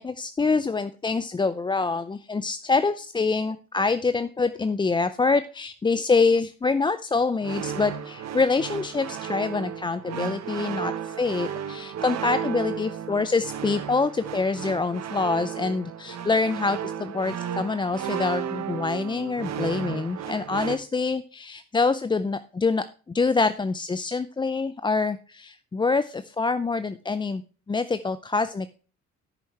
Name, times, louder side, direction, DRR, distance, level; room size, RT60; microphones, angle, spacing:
voice 1, 0.0-27.4 27.7-28.7, left 4 dB, 15° left, 12 dB, 0.4 m, -25 dB
sound 1, 7.4-20.8, right 8 dB, 60° right, 1.1 m, -34 dB
13.0 x 7.0 x 3.2 m, 0.38 s
cardioid pair, 90°, 30 cm